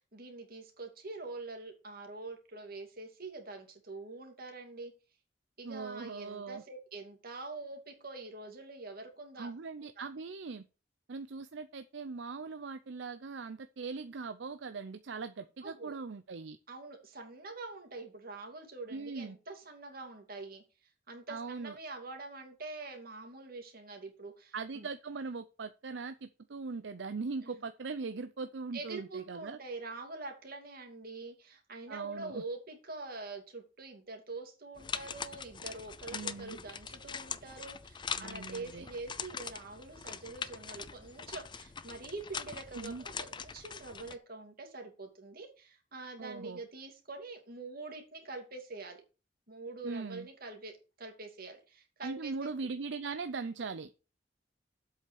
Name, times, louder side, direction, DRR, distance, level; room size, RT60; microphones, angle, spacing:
voice 1, 0.1-4.9 5.6-9.5 10.0-10.1 15.6-16.0 16.7-20.6 21.1-24.9 27.4-27.6 28.7-49.0 49.5-52.5, right 3 dB, 55° right, 4 dB, 2.6 m, -45 dB
voice 2, 5.6-6.6 9.4-10.6 11.1-16.6 18.9-19.4 21.3-21.8 24.5-29.6 31.9-32.4 36.1-36.6 38.2-38.9 42.7-43.0 46.2-46.6 49.8-50.3 52.0-53.9, right 4 dB, 70° right, 11 dB, 0.6 m, -40 dB
sound 1, 34.8-44.2, left 6 dB, 25° left, 0.5 m, -42 dB
7.9 x 5.6 x 6.9 m, 0.32 s
head